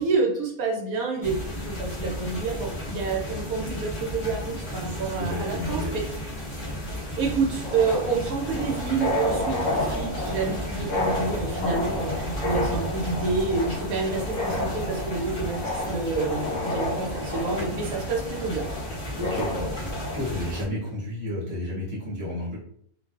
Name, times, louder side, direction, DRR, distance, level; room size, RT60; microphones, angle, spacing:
voice 1, 0.0-6.0 7.1-18.6, right 4 dB, 80° right, -1 dB, 1.1 m, -28 dB
sound 1, 1.2-20.7, equal, 45° left, 0.5 m, -34 dB
voice 2, 4.8-6.0 19.2-22.6, left 1 dB, 15° right, -6 dB, 0.9 m, -32 dB
sound 2, 7.6-20.6, left 1 dB, 65° left, 0.9 m, -31 dB
2.5 x 2.3 x 2.4 m, 0.65 s
omnidirectional pair, 1.5 m